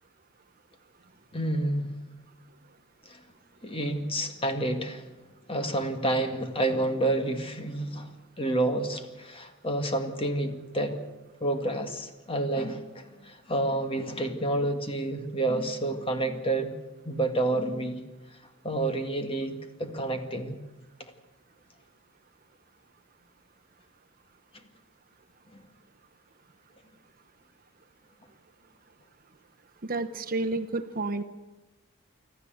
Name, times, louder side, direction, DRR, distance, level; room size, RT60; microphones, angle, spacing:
voice 1, 1.3-1.9 3.1-3.2 3.6-5.0 5.5-11.0 11.4-16.7 17.0-18.0 18.6-20.6 25.5-25.6, right 1 dB, 25° left, 6 dB, 2.0 m, -29 dB
voice 2, 29.8-31.2, right 2 dB, 40° right, 8 dB, 0.9 m, -30 dB
25.5 x 14.5 x 7.9 m, 1.1 s
head